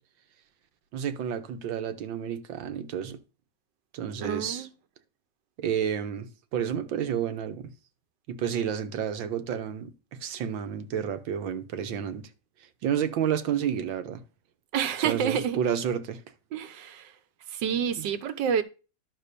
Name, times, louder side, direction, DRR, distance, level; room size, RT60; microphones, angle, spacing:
voice 1, 0.9-3.2 3.9-4.7 5.6-7.7 8.3-12.3 12.8-14.2 15.0-16.2 18.0-18.1, right 8 dB, 90° right, 1.8 m, -30 dB
voice 2, 4.2-4.7 14.7-15.6 16.5-17.1 17.5-18.6, right 8 dB, 75° right, 1.6 m, -28 dB
11.5 x 4.1 x 6.8 m
omnidirectional pair, 2.0 m